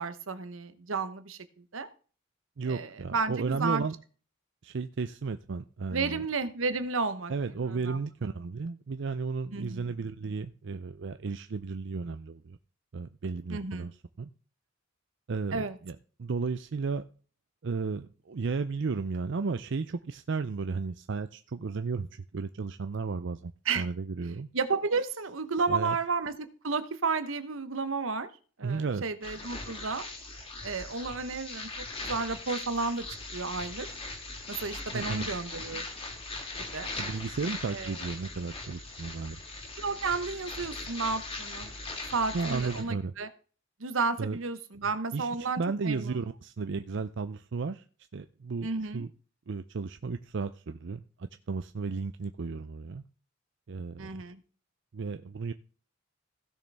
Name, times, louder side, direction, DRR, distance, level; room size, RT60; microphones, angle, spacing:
voice 1, 0.0-1.4 1.7-1.9 2.7-3.8 5.9-7.3 7.7-8.0 9.5-9.9 13.5-13.9 15.5-15.8 23.6-23.8 24.5-28.3 28.6-30.1 30.6-33.0 33.3-33.9 34.5-35.9 36.6-36.9 37.7-37.9 39.8-41.7 42.1-43.3 43.8-46.2 48.6-49.0 54.0-54.4, right 4 dB, 85° right, 11 dB, 1.1 m, -32 dB
voice 2, 2.6-4.0 4.6-6.2 7.3-12.6 12.9-14.3 15.3-17.0 17.6-24.5 25.7-26.0 28.6-29.0 34.9-35.3 37.0-39.4 42.3-43.1 44.2-44.4 45.1-47.8 48.1-48.7 48.9-49.1 49.5-53.0 53.7-54.2 54.9-55.5, right 4 dB, 60° right, 9 dB, 0.5 m, -34 dB
sound 1, 29.2-42.8, left 2 dB, 30° left, 2.2 m, -40 dB
16.0 x 6.6 x 3.5 m, 0.39 s
head